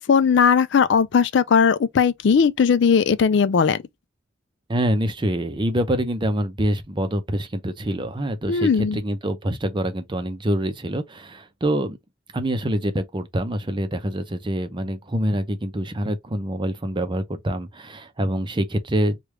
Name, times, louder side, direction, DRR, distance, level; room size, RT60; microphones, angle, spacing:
voice 1, 0.0-3.8 8.5-9.0, left 6 dB, 65° left, 0.4 m, -18 dB
voice 2, 4.7-12.0 12.3-19.2, right 1 dB, 25° right, 0.6 m, -25 dB
3.3 x 2.4 x 3.1 m
head